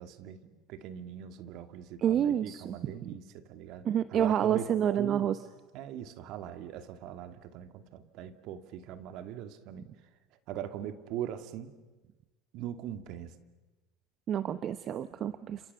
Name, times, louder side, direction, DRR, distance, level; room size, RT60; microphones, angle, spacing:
voice 1, 0.0-5.3 5.7-9.9 10.5-11.7 12.5-13.3 15.1-15.2, right 10 dB, 60° right, 9 dB, 2.3 m, -41 dB
voice 2, 2.0-3.1 3.8-5.4 14.3-15.6, right 9 dB, 45° right, 13 dB, 0.9 m, -29 dB
30.0 x 27.5 x 6.9 m, 1.2 s
supercardioid pair, 95°, 0 cm